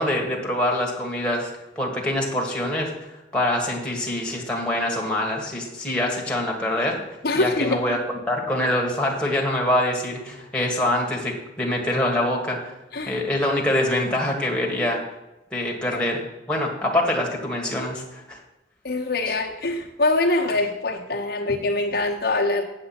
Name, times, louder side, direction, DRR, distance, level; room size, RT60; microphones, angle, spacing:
voice 1, 0.0-7.0 7.3-8.0 8.3-12.7 13.1-15.0 15.5-16.2 16.5-18.4 19.2-19.3, left 1 dB, 5° left, -1 dB, 1.7 m, -25 dB
voice 2, 7.2-8.0 12.9-13.2 15.9-16.0 18.8-22.6, left 2 dB, 60° left, 1 dB, 0.9 m, -24 dB
7.9 x 7.5 x 5.9 m, 0.99 s
head